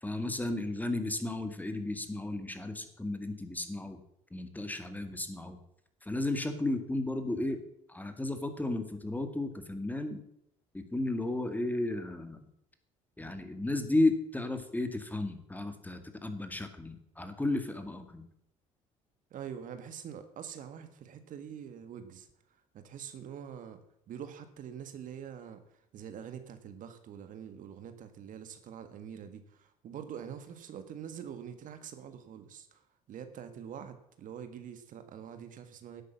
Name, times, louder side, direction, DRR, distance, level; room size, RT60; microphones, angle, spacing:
voice 1, 0.0-4.0 4.3-5.6 6.0-7.6 7.9-10.2 10.7-12.5 13.2-18.2, left 2 dB, 10° left, 8 dB, 2.1 m, -33 dB
voice 2, 19.3-22.3 22.7-23.8 24.1-25.6 25.9-36.0, right 8 dB, 60° right, 9 dB, 1.7 m, -45 dB
11.0 x 8.4 x 7.4 m, 0.76 s
supercardioid pair, 70°, 15 cm